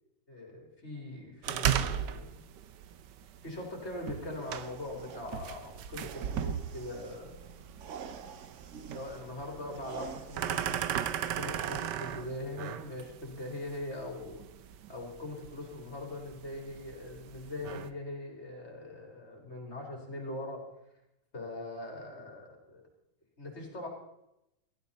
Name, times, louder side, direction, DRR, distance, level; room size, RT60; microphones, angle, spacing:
voice 1, 0.3-2.4 3.4-7.6 8.8-14.4 14.9-20.6 21.3-22.8 23.4-23.9, left 2 dB, 35° left, 1 dB, 4.1 m, -41 dB
sound 1, 1.4-17.9, right 9 dB, 75° right, 1.4 m, -37 dB
sound 2, 4.4-12.3, right 6 dB, 55° right, 0.9 m, -48 dB
16.5 x 15.0 x 4.2 m, 0.86 s
omnidirectional pair, 1.9 m